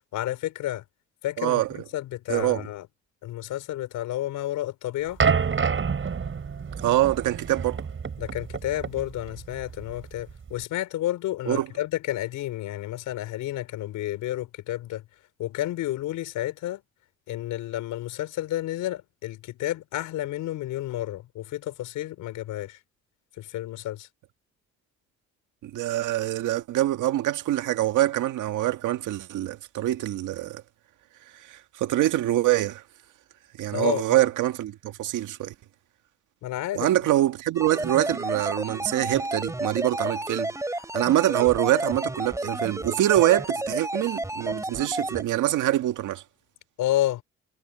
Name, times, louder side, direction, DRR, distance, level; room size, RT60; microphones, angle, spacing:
voice 1, 0.1-0.8 1.2-2.9 3.2-5.2 8.2-15.0 15.4-16.8 17.3-22.8 23.4-24.1 33.7-34.2 36.4-36.9 46.8-47.2, left 14 dB, 90° left, 5.5 m, -31 dB
voice 2, 1.4-1.7 2.3-2.7 6.8-7.8 11.4-11.7 25.6-30.6 31.3-32.8 33.6-35.5 36.7-46.2, right 14 dB, 85° right, 1.8 m, -25 dB
sound 1, 5.2-10.6, right 6 dB, 40° right, 6.7 m, -28 dB
sound 2, 37.5-45.2, right 1 dB, 10° right, 5.2 m, -31 dB
cardioid pair, 90°, 30 cm